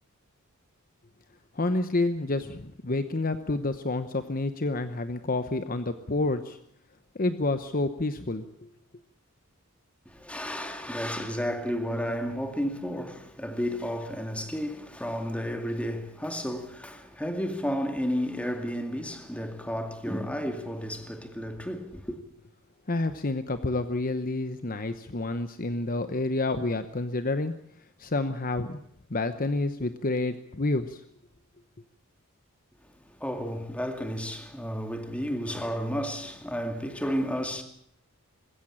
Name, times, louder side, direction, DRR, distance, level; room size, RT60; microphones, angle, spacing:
voice 1, 1.5-6.6 7.1-8.7 22.9-27.5 28.0-28.8 29.1-31.0, left 2 dB, 40° left, 1.0 m, -29 dB
voice 2, 10.1-22.2 33.1-37.6, equal, 5° left, 2.3 m, -32 dB
20.5 x 16.5 x 8.7 m
head